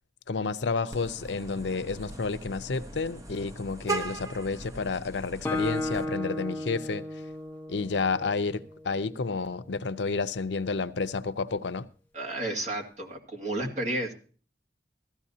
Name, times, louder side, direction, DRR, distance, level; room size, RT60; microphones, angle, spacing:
voice 1, 0.3-7.2 7.7-11.9, left 4 dB, 85° left, 0.6 m, -30 dB
Vehicle horn car horn honking, 0.9-6.0, right 3 dB, 20° right, 0.8 m, -39 dB
Guitar, 5.4-9.1, left 1 dB, 10° left, 0.9 m, -34 dB
voice 2, 12.1-14.1, right 1 dB, 40° right, 2.1 m, -32 dB
16.0 x 14.0 x 2.8 m
head